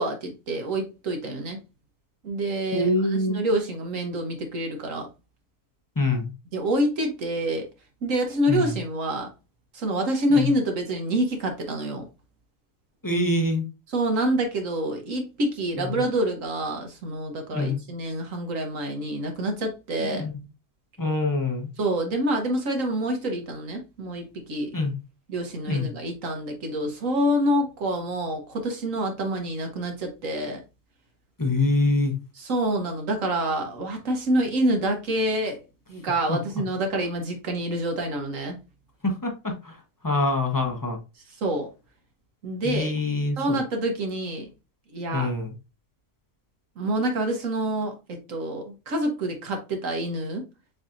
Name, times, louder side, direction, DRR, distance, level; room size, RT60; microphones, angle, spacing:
voice 1, 0.0-1.6 2.2-5.1 6.5-7.7 8.0-9.3 9.7-12.1 13.9-20.2 21.8-24.7 25.3-30.6 32.4-35.6 35.9-38.6 41.4-41.7 42.4-42.9 43.4-44.5 44.9-45.3 46.8-50.4, right 1 dB, 60° right, 1.2 m, -27 dB
voice 2, 2.7-3.4 6.0-6.3 8.5-8.8 10.3-10.5 13.0-13.6 15.8-16.0 17.5-17.8 20.0-20.3 21.0-21.7 24.7-24.9 25.7-25.9 31.4-32.1 36.3-36.4 39.0-39.8 40.0-41.0 42.6-43.6 45.1-45.5, left 2 dB, 20° left, 0.7 m, -25 dB
7.1 x 2.8 x 2.5 m
omnidirectional pair, 1.6 m